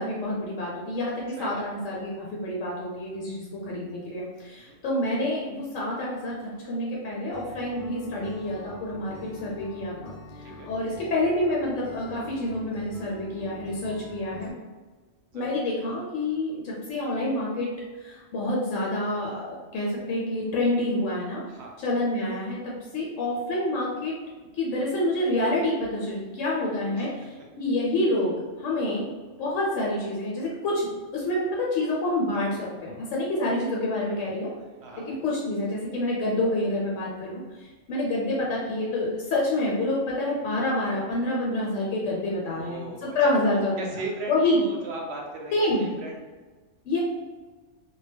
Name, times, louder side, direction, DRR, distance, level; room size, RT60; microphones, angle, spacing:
voice 1, 0.0-10.1 10.5-14.5 15.3-17.7 18.0-21.4 21.8-24.2 24.5-28.3 28.6-29.1 29.4-34.5 35.0-43.8 44.3-44.6 45.5-45.9 46.8-47.0, left 1 dB, 80° left, -4 dB, 0.9 m, -28 dB
Acoustic guitar, 7.3-14.5, equal, 55° left, 0.4 m, -45 dB
voice 2, 42.4-45.5 45.8-46.2, right 2 dB, 65° right, 0 dB, 0.8 m, -38 dB
2.2 x 2.1 x 3.3 m, 1.3 s
omnidirectional pair, 1.3 m